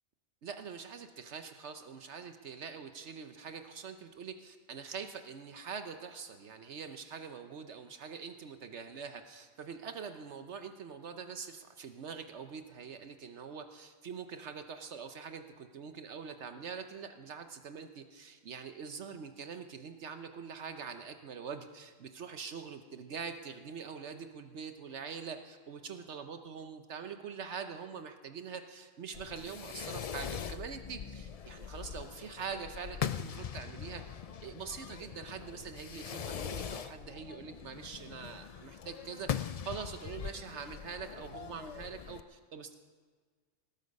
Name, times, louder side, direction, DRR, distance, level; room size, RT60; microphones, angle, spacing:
voice 1, 0.4-34.0 34.4-42.7, right 6 dB, 70° right, 8 dB, 1.1 m, -44 dB
Fireworks, 29.1-42.2, left 8 dB, 60° left, 0.3 m, -41 dB
19.5 x 12.0 x 5.3 m, 1.5 s
omnidirectional pair, 1.2 m